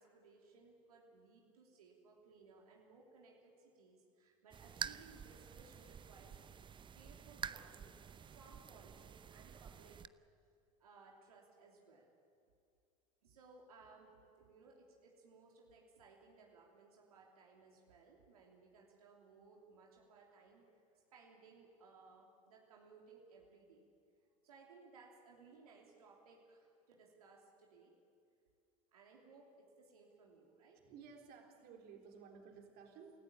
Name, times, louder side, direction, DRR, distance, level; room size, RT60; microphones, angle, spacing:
voice 1, 0.0-6.4 6.9-10.0 10.8-12.1 13.2-14.1 14.4-23.8 24.4-28.0 28.9-30.9, right 4 dB, 85° right, -1 dB, 3.2 m, -62 dB
sound 1, 4.5-10.1, right 7 dB, 25° right, 0.7 m, -48 dB
voice 2, 30.7-33.2, right 6 dB, 55° right, 2 dB, 3.9 m, -56 dB
28.0 x 14.5 x 8.7 m, 2.4 s
hypercardioid pair, 85°, 19 cm